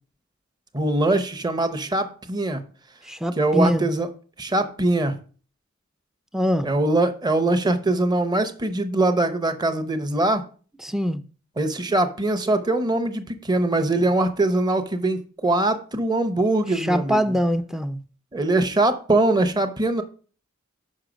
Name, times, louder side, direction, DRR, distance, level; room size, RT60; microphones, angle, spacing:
voice 1, 0.7-2.6 3.4-4.1 4.4-5.2 6.6-10.5 11.6-17.4 18.3-20.0, right 2 dB, 20° right, 0.8 m, -22 dB
voice 2, 3.0-3.9 6.3-6.7 10.8-11.2 16.7-18.0, equal, ahead, 0.4 m, -23 dB
6.4 x 5.6 x 5.0 m
head